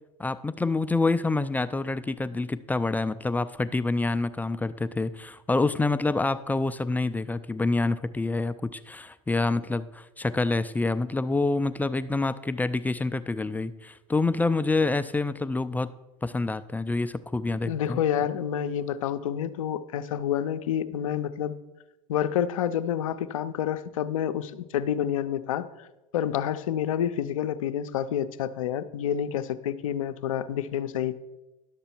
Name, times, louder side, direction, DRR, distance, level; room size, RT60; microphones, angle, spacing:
voice 1, 0.2-15.9 16.2-18.0, left 3 dB, 10° left, 13 dB, 0.3 m, -27 dB
voice 2, 17.6-21.6 22.1-25.9 26.1-31.1, left 9 dB, 85° left, 11 dB, 0.5 m, -28 dB
11.0 x 6.8 x 4.4 m, 1.0 s
hypercardioid pair, 90°, 17 cm